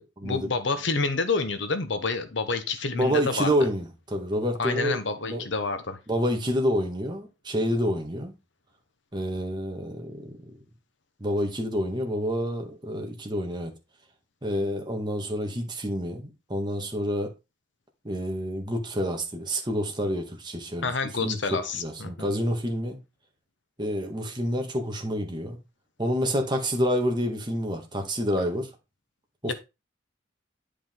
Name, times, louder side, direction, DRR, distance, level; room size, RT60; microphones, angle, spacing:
voice 1, 0.0-3.5 4.6-6.0 20.8-22.3 29.5-29.6, left 3 dB, 65° left, 1.1 m, -28 dB
voice 2, 2.9-5.0 5.2-5.4 6.1-8.3 9.1-10.3 11.2-13.7 14.4-17.3 18.0-20.9 21.2-21.4 21.8-23.0 23.8-25.6 26.0-28.7 29.4-29.5, equal, 20° right, 1.9 m, -28 dB
10.0 x 5.1 x 3.8 m
head